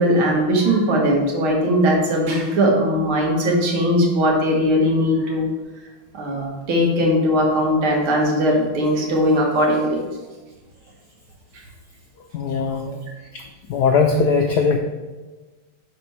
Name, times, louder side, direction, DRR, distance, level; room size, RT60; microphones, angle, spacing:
voice 1, 0.0-5.5 6.1-10.0, equal, 75° right, -1 dB, 2.2 m, -19 dB
voice 2, 12.3-12.9 13.3-13.4 13.7-14.8, left 5 dB, 80° left, 3 dB, 0.9 m, -19 dB
11.5 x 4.3 x 3.1 m, 1.2 s
omnidirectional pair, 2.3 m